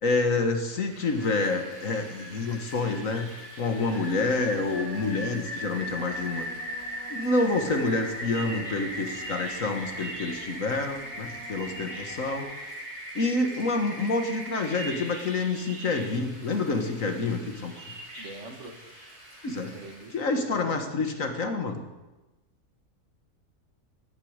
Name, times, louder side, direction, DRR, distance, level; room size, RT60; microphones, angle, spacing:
voice 1, 0.0-3.3 3.6-6.5 7.1-12.5 13.2-17.7 19.4-19.7 20.1-21.8, left 3 dB, 60° left, 6 dB, 1.9 m, -28 dB
Rain, 0.8-20.2, equal, 90° right, 6.8 m, -39 dB
sound 1, 3.9-12.5, right 1 dB, 10° right, 1.6 m, -47 dB
voice 2, 18.2-18.8 19.7-20.8, right 2 dB, 50° right, 4 dB, 2.0 m, -43 dB
16.0 x 11.5 x 6.6 m, 1.1 s
omnidirectional pair, 1.6 m